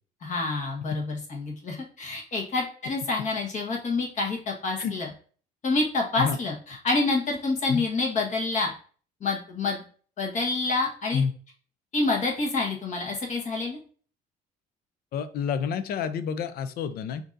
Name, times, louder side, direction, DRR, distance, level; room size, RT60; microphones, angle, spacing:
voice 1, 0.2-5.1 5.6-8.7 9.2-9.8 10.2-11.2 11.9-13.8, left 3 dB, 45° left, -1 dB, 1.3 m, -27 dB
voice 2, 15.1-17.3, left 6 dB, 65° left, 12 dB, 0.5 m, -28 dB
5.9 x 2.7 x 2.6 m, 0.42 s
cardioid pair, 110°, 17 cm